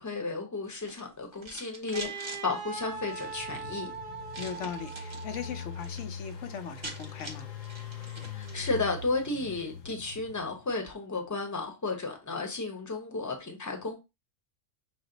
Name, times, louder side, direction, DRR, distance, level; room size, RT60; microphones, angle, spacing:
voice 1, 0.0-3.9 8.3-14.0, left 3 dB, 15° left, 0.7 m, -33 dB
sound 1, 0.6-2.4 3.0-3.6 4.3-5.3 5.6-6.0 6.3-6.4 6.6-8.8, right 2 dB, 25° right, 0.7 m, -45 dB
Wind instrument woodwind instrument, 1.9-6.0, right 5 dB, 55° right, 0.9 m, -41 dB
Engine, 2.7-10.7, left 6 dB, 50° left, 0.5 m, -43 dB
voice 2, 4.4-7.5, left 7 dB, 70° left, 1.0 m, -39 dB
6.0 x 2.0 x 3.9 m
omnidirectional pair, 1.3 m